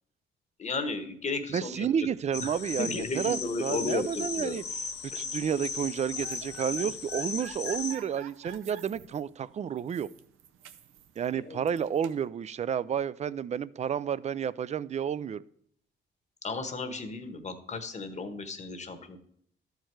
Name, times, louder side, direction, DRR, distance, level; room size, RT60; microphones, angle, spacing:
voice 1, 0.6-2.1 2.4-2.5 2.8-4.6 11.3-11.7 16.4-19.2, left 3 dB, 35° left, 1.1 m, -34 dB
voice 2, 1.5-4.6 5.2-10.1 11.2-15.4, right 8 dB, 35° right, 0.4 m, -31 dB
sound 1, 2.3-8.0, left 5 dB, 60° left, 1.0 m, -37 dB
sound 2, 5.8-12.3, right 8 dB, 90° right, 0.6 m, -49 dB
12.5 x 4.6 x 4.5 m
cardioid pair, 90°, 20 cm